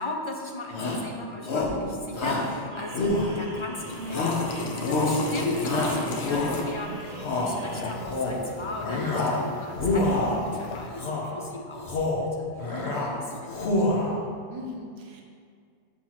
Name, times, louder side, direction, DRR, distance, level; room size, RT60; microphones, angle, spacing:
voice 1, 0.0-4.7 5.0-12.1 12.4-13.7, left 2 dB, 40° left, 1 dB, 0.4 m, -37 dB
Shout, 0.7-1.1 1.4-1.8 2.1-2.5 2.9-3.6 4.1-4.5 4.8-5.2 5.6-6.7 7.1-7.5 8.0-8.4 8.8-9.4 9.7-10.4 10.9-11.3 11.7-12.3 12.6-13.1 13.5-14.2, left 2 dB, 65° left, 1.2 m, -27 dB
sound 1, 2.7-7.9, right 2 dB, 40° right, 0.7 m, -42 dB
sound 2, 3.7-10.9, left 4 dB, 85° left, 1.0 m, -36 dB
voice 2, 13.0-13.4 14.5-15.2, left 1 dB, 60° right, 0 dB, 1.1 m, -40 dB
7.1 x 2.9 x 5.7 m, 2.1 s
omnidirectional pair, 1.2 m